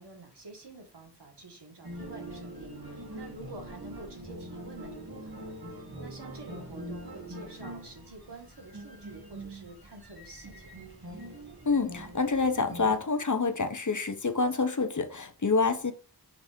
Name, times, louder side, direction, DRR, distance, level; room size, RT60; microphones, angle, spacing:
voice 1, 0.0-5.6 6.0-11.0, right 2 dB, 85° right, 1.8 m, -48 dB
sound 1, 1.8-13.0, right 1 dB, 65° right, 2.4 m, -43 dB
voice 2, 11.7-15.9, left 4 dB, 45° left, 0.9 m, -27 dB
6.0 x 3.4 x 5.0 m
wide cardioid pair, 55°, 40 cm